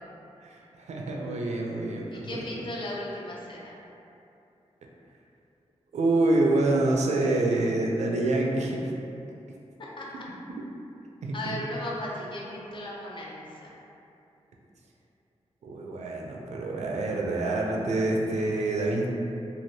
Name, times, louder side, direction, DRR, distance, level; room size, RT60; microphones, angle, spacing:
voice 1, 0.4-2.5 5.9-8.9 11.2-11.3 15.6-19.1, right 2 dB, 75° right, -1 dB, 0.4 m, -26 dB
voice 2, 2.1-3.8 10.0-10.2 11.3-13.8, left 1 dB, 45° left, -4 dB, 0.4 m, -36 dB
3.1 x 2.4 x 2.7 m, 2.7 s
wide cardioid pair, 170°, 12 cm